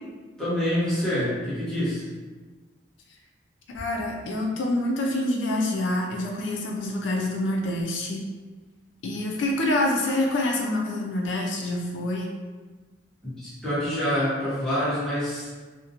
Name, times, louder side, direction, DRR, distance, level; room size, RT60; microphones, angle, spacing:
voice 1, 0.4-2.0 13.2-15.5, equal, 5° left, -11 dB, 1.0 m, -26 dB
voice 2, 3.7-8.2 9.0-12.3, left 1 dB, 85° left, 0 dB, 0.4 m, -26 dB
2.5 x 2.1 x 2.7 m, 1.3 s
head